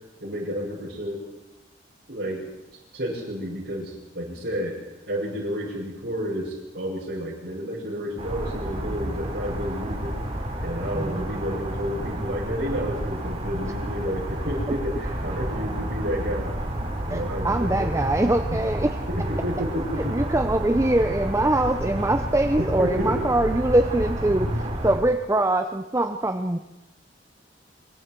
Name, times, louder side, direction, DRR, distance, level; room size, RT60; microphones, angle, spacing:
voice 1, 0.2-1.2 2.1-2.5 2.9-4.8 5.1-10.2 10.6-16.5 17.1-17.9 18.5-18.6 19.1-20.0 22.6-23.5, equal, 60° right, -8 dB, 7.1 m, -30 dB
sound 1, 8.2-25.0, right 1 dB, 35° right, 3.6 m, -30 dB
voice 2, 17.1-19.0 20.1-26.6, right 1 dB, 15° right, 7 dB, 0.8 m, -23 dB
25.0 x 22.5 x 4.7 m, 1.0 s
head